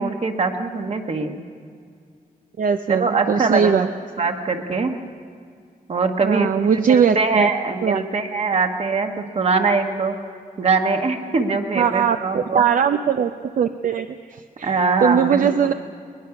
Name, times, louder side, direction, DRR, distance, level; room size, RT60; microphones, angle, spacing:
voice 1, 0.0-1.4 2.9-3.9 4.2-4.9 5.9-10.2 10.6-12.7 14.6-15.5, right 4 dB, 45° right, 5 dB, 1.4 m, -22 dB
voice 2, 2.6-3.9 6.2-7.5 7.8-8.0 11.8-14.7 15.0-15.7, right 7 dB, 60° right, 8 dB, 0.6 m, -20 dB
21.5 x 20.5 x 5.9 m, 2.2 s
wide cardioid pair, 175°, 15 cm